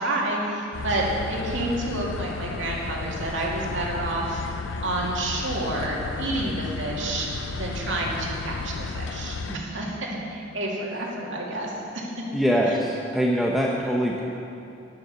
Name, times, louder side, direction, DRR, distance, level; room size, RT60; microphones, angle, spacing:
voice 1, 0.0-12.1 12.7-12.8, right 1 dB, 80° right, -3 dB, 2.4 m, -29 dB
sound 1, 0.7-9.6, left 4 dB, 80° left, 0.5 m, -33 dB
voice 2, 12.3-14.2, equal, ahead, -2 dB, 0.8 m, -23 dB
10.5 x 9.7 x 6.8 m, 2.7 s
head